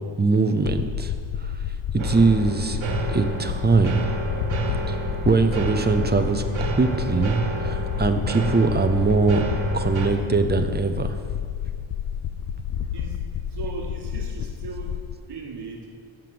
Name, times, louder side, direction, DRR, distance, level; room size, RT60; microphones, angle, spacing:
voice 1, 0.2-1.1 1.4-1.6 1.9-2.8 3.1-4.0 4.9-5.0 5.2-9.5 9.7-11.2, right 3 dB, 20° right, 8 dB, 0.6 m, -22 dB
sound 1, 0.7-15.1, left 8 dB, 75° left, 0.6 m, -30 dB
sound 2, 2.0-10.1, right 3 dB, 70° right, 1.6 m, -30 dB
voice 2, 13.5-15.0 15.3-15.9, right 4 dB, 55° right, 2 dB, 1.6 m, -37 dB
12.0 x 7.7 x 7.0 m, 2.2 s
wide cardioid pair, 160°, 49 cm